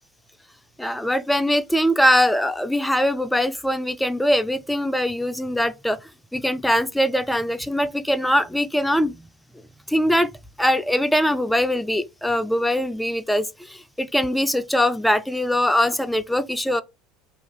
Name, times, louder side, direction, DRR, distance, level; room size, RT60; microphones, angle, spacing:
voice 1, 0.8-6.0 6.3-9.3 9.9-10.3 10.6-16.8, equal, 5° left, 0.4 m, -22 dB
2.6 x 2.3 x 2.9 m
hypercardioid pair, 75°, 0 cm